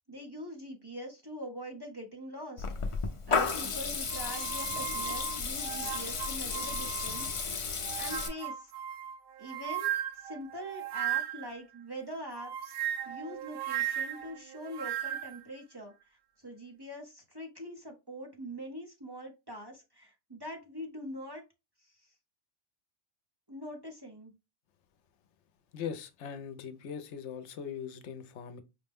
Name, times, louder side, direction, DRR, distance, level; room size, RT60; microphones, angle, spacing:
voice 1, 0.1-2.7 3.0-7.7 8.0-8.7 9.4-9.9 10.1-12.7 13.0-21.4 21.8-22.1 23.5-24.3, equal, 25° right, 0.6 m, -43 dB
Water tap faucet / Liquid, 2.6-8.3, left 5 dB, 45° left, 0.4 m, -33 dB
sound 1, 4.1-7.4 7.8-11.6 12.3-15.4, right 11 dB, 60° right, 0.6 m, -36 dB
voice 2, 25.7-28.6, left 7 dB, 75° left, 0.9 m, -40 dB
4.9 x 2.1 x 3.4 m
omnidirectional pair, 1.2 m